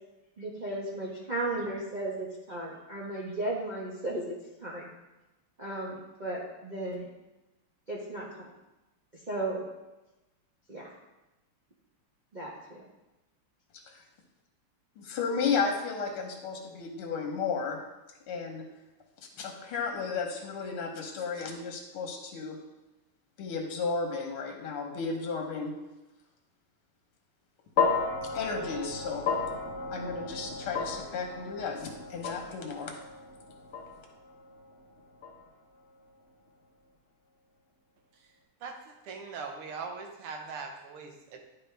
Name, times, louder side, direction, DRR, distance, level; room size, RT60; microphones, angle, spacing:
voice 1, 0.4-4.9 5.6-7.1 7.9-8.5 9.3-9.6 10.7-10.9 12.3-12.8, right 2 dB, 35° right, -6 dB, 0.7 m, -35 dB
voice 2, 15.0-17.8 18.3-18.6 19.4-22.6 23.4-25.7 28.3-29.2 29.9-32.9, left 5 dB, 80° left, 2 dB, 1.9 m, -33 dB
sound 1, 27.8-36.1, left 5 dB, 50° left, 0.8 m, -34 dB
voice 3, 38.6-41.4, right 5 dB, 90° right, 3 dB, 1.8 m, -41 dB
11.0 x 4.1 x 3.3 m, 1.0 s
omnidirectional pair, 2.4 m